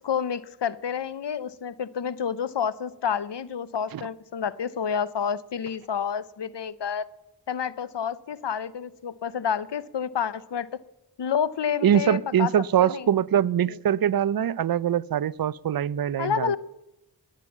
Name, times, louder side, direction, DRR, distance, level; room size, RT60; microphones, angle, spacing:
voice 1, 0.0-7.0 7.5-10.7 11.2-12.5 12.8-13.1 13.7-13.8 16.2-16.6, left 7 dB, 90° left, 18 dB, 0.7 m, -29 dB
voice 2, 11.8-16.6, right 9 dB, 60° right, 21 dB, 0.5 m, -23 dB
19.5 x 9.0 x 7.2 m, 0.95 s
wide cardioid pair, 40°, 41 cm